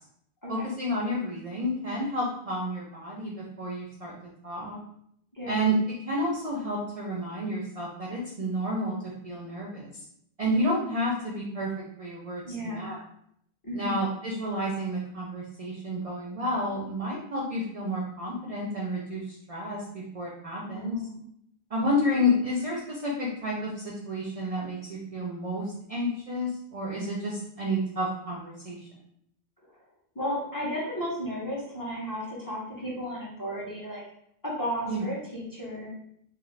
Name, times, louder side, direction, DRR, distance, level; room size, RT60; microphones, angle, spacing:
voice 1, 0.5-4.1 4.4-4.8 5.5-5.8 6.0-9.9 10.4-11.7 12.0-13.0 13.7-21.0 21.7-28.9 34.9-35.0, equal, 50° right, -3 dB, 0.4 m, -30 dB
voice 2, 5.3-5.6 12.5-12.9 13.6-14.0 20.7-21.2 30.1-34.0 34.4-35.9, equal, 20° left, -6 dB, 0.7 m, -34 dB
2.5 x 2.5 x 3.1 m, 0.72 s
omnidirectional pair, 1.1 m